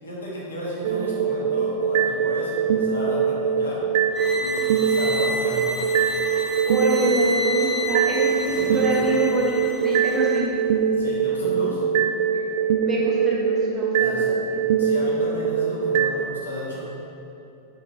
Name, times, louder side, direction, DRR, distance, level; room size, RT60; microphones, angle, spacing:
voice 1, 0.0-3.8 4.4-5.6 8.4-9.1 11.0-11.8 13.9-14.3 14.8-16.8, equal, 75° left, -6 dB, 1.4 m, -34 dB
sound 1, 0.8-16.2, right 6 dB, 55° right, 0.3 m, -23 dB
sound 2, 4.1-10.5, left 1 dB, 5° right, 0.7 m, -31 dB
voice 2, 6.7-10.5 12.8-14.6, right 2 dB, 25° right, -4 dB, 1.3 m, -26 dB
5.2 x 4.9 x 3.7 m, 2.9 s
figure-of-eight pair, 90°, 0 cm